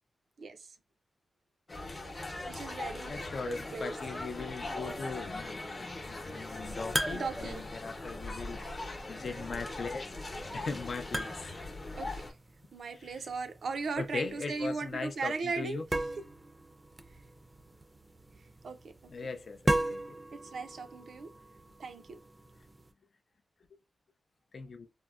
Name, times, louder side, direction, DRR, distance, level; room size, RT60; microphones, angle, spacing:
voice 1, 0.4-0.8 2.5-3.9 7.1-7.6 12.0-12.2 12.7-15.9 18.6-18.9 19.2-19.3 20.3-21.3 21.8-22.2, right 4 dB, 80° right, 0.4 m, -38 dB
sound 1, 1.7-12.3, left 2 dB, 40° left, 0.7 m, -40 dB
voice 2, 3.0-10.0 10.5-11.5 12.9-13.2 14.0-15.8 19.1-20.2 24.5-24.9, left 4 dB, 65° left, 0.4 m, -40 dB
sound 2, 5.8-22.9, right 1 dB, 20° right, 0.4 m, -40 dB
3.5 x 2.0 x 2.3 m
wide cardioid pair, 85°, 0 cm